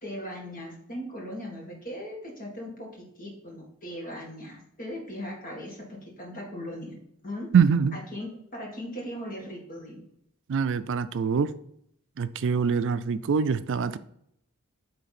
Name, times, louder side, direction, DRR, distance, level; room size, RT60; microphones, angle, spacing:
voice 1, 0.0-2.9 3.2-6.9 7.2-7.5 7.9-10.0, equal, 40° left, 1.9 m, -38 dB
voice 2, 7.5-8.0 10.5-11.5 12.2-14.0, right 6 dB, 55° right, 0.4 m, -24 dB
8.7 x 3.4 x 4.2 m
head